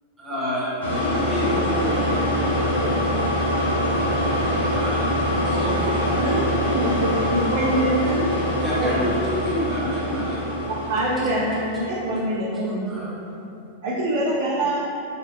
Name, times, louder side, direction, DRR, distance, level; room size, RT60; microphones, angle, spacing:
voice 1, 0.2-2.2 4.7-5.1 5.4-6.0 6.6-6.7 8.0-8.1 8.6-10.5 12.5-13.4, equal, 10° right, -9 dB, 0.9 m, -29 dB
sound 1, 0.8-12.0, equal, 70° left, 0.6 m, -24 dB
voice 2, 1.4-4.8, right 1 dB, 75° right, -8 dB, 0.8 m, -38 dB
voice 3, 6.1-8.3 8.8-9.1 10.9-13.1 13.8-14.8, right 1 dB, 60° right, -8 dB, 0.4 m, -25 dB
4.3 x 2.1 x 2.5 m, 2.8 s
figure-of-eight pair, 90°, 0 cm